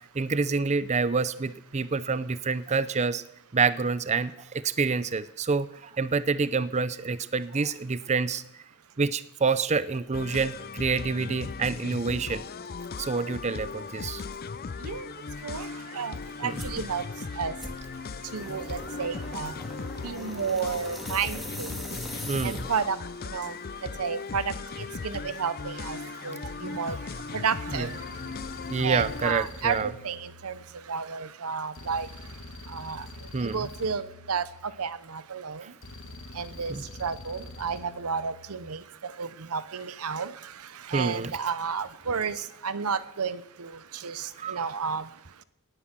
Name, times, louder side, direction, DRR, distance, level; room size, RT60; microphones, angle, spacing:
voice 1, 0.1-3.2 3.5-8.4 9.0-12.4 13.0-14.2 16.4-16.5 22.3-22.6 26.6-26.8 27.7-27.9 28.7-29.9 33.3-33.7 35.6-35.7 36.7-36.8 40.9-41.3 44.4-44.7, right 4 dB, 30° right, 15 dB, 0.6 m, -27 dB
sound 1, 10.1-29.3, left 4 dB, 45° left, 0.5 m, -38 dB
voice 2, 15.9-17.0 17.4-17.5 18.3-19.5 20.0-21.7 22.4-23.0 23.3-23.5 24.0-24.5 25.0-26.0 26.2-27.0 27.3-27.9 28.8-30.6 30.9-32.1 32.7-33.0 33.4-34.4 34.8-35.6 36.4-36.7 37.0-40.3 40.9-42.4 42.6-43.7 44.0-45.0, right 6 dB, 85° right, 15 dB, 0.9 m, -31 dB
Double lite Toke, 16.5-16.8 17.6-23.0, equal, ahead, 2.2 m, -41 dB
sound 2, 27.9-31.0 31.7-35.0 35.8-38.7, left 2 dB, 65° left, 1.5 m, -45 dB
18.5 x 10.0 x 7.5 m, 0.80 s
head